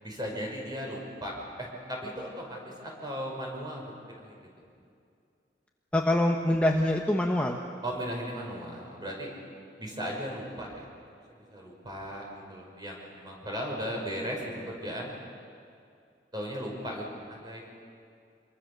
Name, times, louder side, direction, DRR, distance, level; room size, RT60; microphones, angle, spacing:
voice 1, 0.0-4.5 7.8-9.3 9.8-10.9 11.3-15.1 16.3-17.6, equal, 25° right, -1 dB, 5.6 m, -37 dB
voice 2, 5.9-7.6, left 1 dB, 10° left, 1 dB, 1.1 m, -25 dB
26.5 x 23.5 x 6.9 m, 2.4 s
head